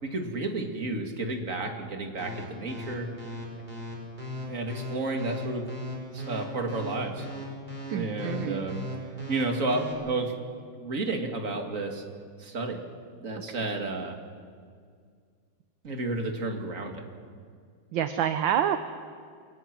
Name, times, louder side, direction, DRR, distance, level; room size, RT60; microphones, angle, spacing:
voice 1, 0.0-3.1 4.5-5.6 6.1-7.3 7.9-8.9 9.3-10.3 10.8-12.0 12.4-12.8 13.2-14.1 15.8-17.1, right 2 dB, 35° right, 3 dB, 2.6 m, -31 dB
sound 1, 2.2-9.9, left 1 dB, 20° right, 5.0 m, -37 dB
voice 2, 7.9-8.7 13.8-13.9 17.9-18.8, right 9 dB, 70° right, 9 dB, 1.5 m, -28 dB
27.5 x 22.5 x 6.1 m, 2.1 s
omnidirectional pair, 2.3 m